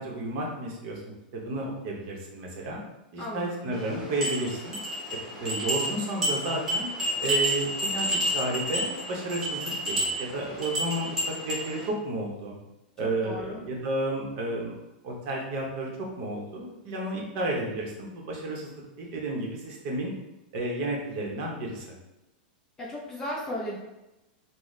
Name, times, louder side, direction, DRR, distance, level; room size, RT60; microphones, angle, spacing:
voice 1, 0.0-2.8 3.1-4.8 5.4-6.9 7.2-12.6 13.0-14.7 15.0-20.1 20.5-22.0, right 1 dB, 35° right, -1 dB, 0.7 m, -32 dB
voice 2, 3.2-3.8 13.0-13.6 22.8-23.8, equal, 10° left, -5 dB, 0.4 m, -36 dB
sound 1, 3.7-11.9, equal, 5° right, 1.1 m, -30 dB
3.9 x 2.0 x 3.1 m, 0.98 s
supercardioid pair, 170°, 5 cm